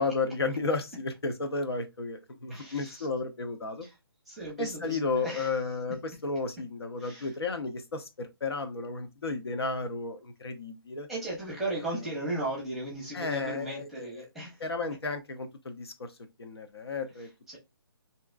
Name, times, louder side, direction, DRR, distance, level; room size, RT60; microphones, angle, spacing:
voice 1, 0.0-3.9 4.6-6.0 6.2-11.1 13.1-14.1 14.6-15.9 16.4-17.3, left 3 dB, 85° left, 0.9 m, -33 dB
voice 2, 2.5-3.1 3.8-4.0 4.3-5.6 7.0-7.3 11.1-14.6 17.2-17.6, right 1 dB, ahead, 0.8 m, -36 dB
3.4 x 2.9 x 2.5 m
hypercardioid pair, 165°, 13 cm